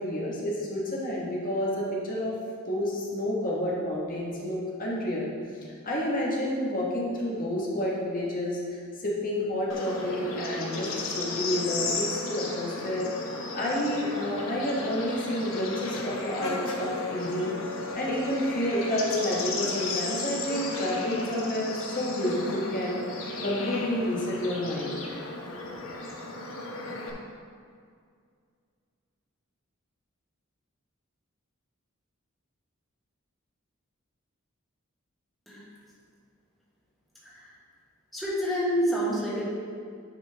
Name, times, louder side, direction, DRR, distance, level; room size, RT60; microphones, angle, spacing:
voice 1, 0.0-2.3 2.7-5.3 5.8-13.1 13.5-17.5 17.9-24.9 25.5-25.7, left 1 dB, 45° left, -4 dB, 1.4 m, -30 dB
Bird / Insect, 9.7-27.1, left 3 dB, 75° left, 1.1 m, -34 dB
voice 2, 37.2-37.6 38.1-39.5, equal, ahead, -7 dB, 1.4 m, -28 dB
9.4 x 5.4 x 3.5 m, 2.2 s
head